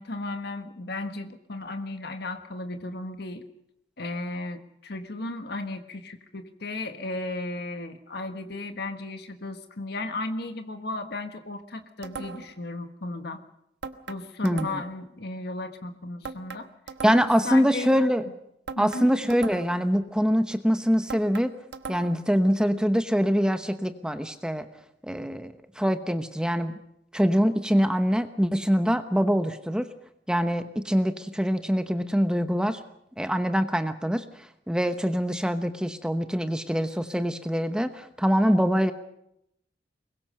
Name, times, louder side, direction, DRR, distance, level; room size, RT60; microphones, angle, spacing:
voice 1, 0.0-3.4 4.0-13.4 14.1-16.7 17.2-18.0 18.8-19.1, left 2 dB, 60° left, 7 dB, 1.5 m, -35 dB
sound 1, 12.0-12.6 13.8-15.0 16.2-17.5 18.7-19.9 21.1-22.3, right 5 dB, 70° right, 1.3 m, -39 dB
voice 2, 14.4-14.8 17.0-18.2 18.8-21.5 21.9-24.7 25.0-26.8 27.1-29.9 30.3-32.8 33.2-38.9, equal, 5° right, 9 dB, 0.9 m, -24 dB
24.0 x 21.5 x 6.6 m, 0.79 s
head